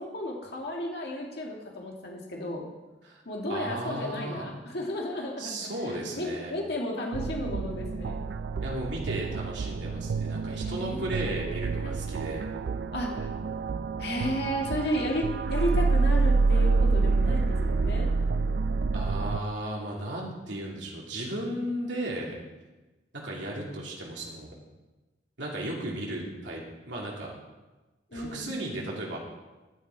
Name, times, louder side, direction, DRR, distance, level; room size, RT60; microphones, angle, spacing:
voice 1, 0.0-2.7 3.3-8.2 10.5-11.3 11.8-11.9 12.9-13.3 14.0-15.2 15.5-18.1 28.1-28.5, left 1 dB, 60° left, -1 dB, 2.0 m, -33 dB
voice 2, 3.5-4.4 5.4-6.5 8.6-12.4 18.9-22.3 23.1-24.5 25.4-27.3 28.1-29.2, right 1 dB, 80° right, -3 dB, 2.6 m, -35 dB
sound 1, 7.1-19.4, right 4 dB, 65° right, 0.4 m, -27 dB
13.5 x 9.4 x 4.6 m, 1.1 s
head